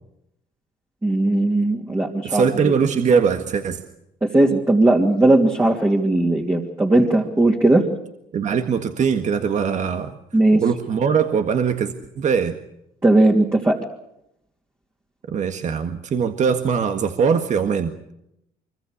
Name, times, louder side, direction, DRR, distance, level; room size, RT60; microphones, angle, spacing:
voice 1, 1.0-2.7 4.2-7.8 10.3-10.6 13.0-13.8, right 2 dB, 15° right, 0 dB, 2.9 m, -18 dB
voice 2, 2.2-3.8 8.3-10.2 10.5-12.6 15.3-17.9, right 6 dB, 45° right, 7 dB, 1.7 m, -21 dB
24.5 x 24.5 x 6.6 m, 0.80 s
cardioid pair, 110°, 17 cm